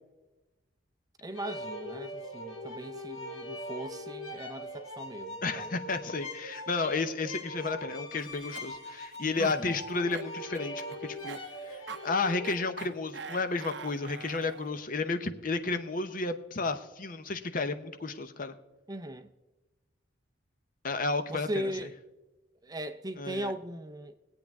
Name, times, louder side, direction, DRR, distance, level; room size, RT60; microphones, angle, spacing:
voice 1, 1.2-5.8 9.4-9.8 18.9-19.3 21.3-22.0 22.6-24.1, right 1 dB, 20° right, 0.5 m, -39 dB
sound 1, 1.3-12.6, left 1 dB, 90° left, 1.6 m, -41 dB
voice 2, 5.4-11.4 11.7-18.5 20.8-21.7 23.2-23.5, left 3 dB, 45° left, 0.7 m, -32 dB
Cough, 8.2-14.8, right 5 dB, 60° right, 0.7 m, -45 dB
22.5 x 8.6 x 3.5 m
head